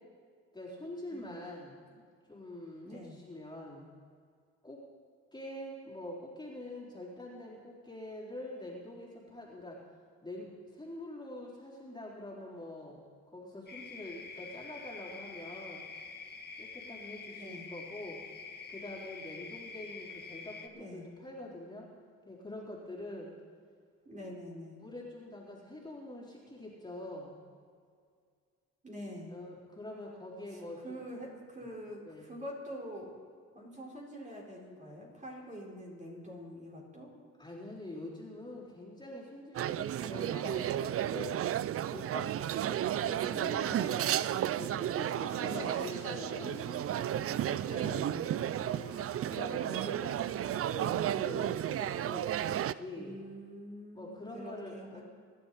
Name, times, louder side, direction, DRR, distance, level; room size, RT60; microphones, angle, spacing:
voice 1, 0.5-2.0 2.3-3.9 4.6-4.8 5.3-9.8 10.2-13.0 13.3-15.8 16.6-18.2 18.7-21.9 22.2-23.3 24.8-27.3 29.3-31.0 32.1-32.3 37.4-41.4 41.9-44.2 44.5-46.7 48.6-53.2 53.9-55.0, left 1 dB, 15° left, -5 dB, 3.8 m, -45 dB
voice 2, 1.1-1.5 2.8-3.2 17.3-17.7 20.7-21.0 24.0-24.8 28.8-29.3 30.8-33.1 33.5-37.1 40.4-40.7 43.0-43.5 45.4-45.8 47.6-48.3 52.9-55.0, equal, 25° right, -3 dB, 4.4 m, -45 dB
sound 1, 13.7-20.7, left 4 dB, 35° left, 1.7 m, -46 dB
sound 2, 39.5-52.7, right 11 dB, 50° right, 0.4 m, -33 dB
sound 3, 44.9-50.9, left 5 dB, 55° left, 1.6 m, -51 dB
24.5 x 11.0 x 4.2 m, 2.1 s
cardioid pair, 90°, 30 cm